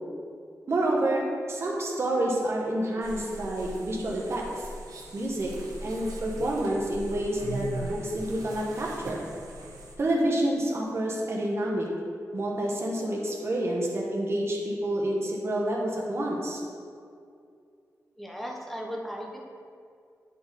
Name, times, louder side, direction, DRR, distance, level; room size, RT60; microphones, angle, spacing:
voice 1, 0.7-4.7 5.1-5.5 5.8-9.2 10.0-11.9 12.3-16.6, right 1 dB, 45° right, -2 dB, 1.1 m, -28 dB
sound 1, 3.0-10.0, right 2 dB, 90° right, 1.0 m, -40 dB
voice 2, 18.2-19.4, equal, ahead, -1 dB, 0.8 m, -36 dB
9.6 x 4.2 x 4.0 m, 2.3 s
wide cardioid pair, 150°, 6 cm